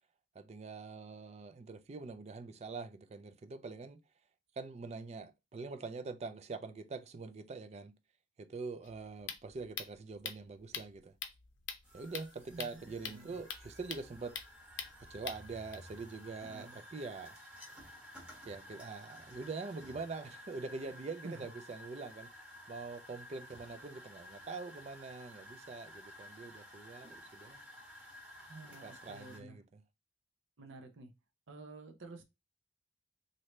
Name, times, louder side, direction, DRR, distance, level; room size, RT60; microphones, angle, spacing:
voice 1, 0.3-4.0 4.6-7.9 8.4-11.1 11.9-14.4 15.1-17.4 18.5-22.3 22.7-27.6 28.8-29.8, right 4 dB, 35° right, 0.4 m, -44 dB
sound 1, 8.8-15.7, left 7 dB, 70° left, 0.6 m, -45 dB
sound 2, 11.8-29.4, equal, 5° right, 1.0 m, -53 dB
voice 2, 12.5-13.4 16.4-16.8 21.2-21.5 28.5-29.6 30.6-31.1 31.5-32.2, right 2 dB, 75° right, 0.7 m, -50 dB
3.1 x 2.7 x 3.1 m
head